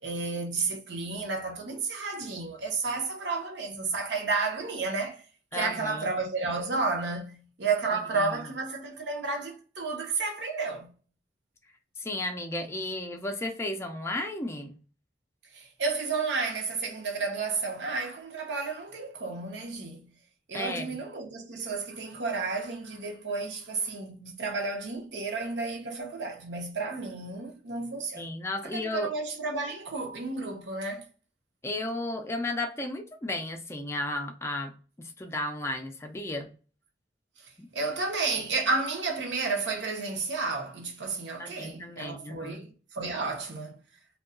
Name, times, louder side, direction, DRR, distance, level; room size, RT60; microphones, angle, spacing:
voice 1, 0.0-5.2 5.5-10.9 15.5-20.1 20.5-28.2 28.6-31.1 37.7-43.8, right 4 dB, 80° right, 0.7 m, -32 dB
voice 2, 5.5-6.1 8.1-8.4 12.0-14.8 20.5-21.0 28.2-29.1 31.6-34.7 35.0-36.5 37.6-37.7 41.4-42.6, left 2 dB, 15° left, 0.3 m, -34 dB
2.7 x 2.2 x 2.4 m
head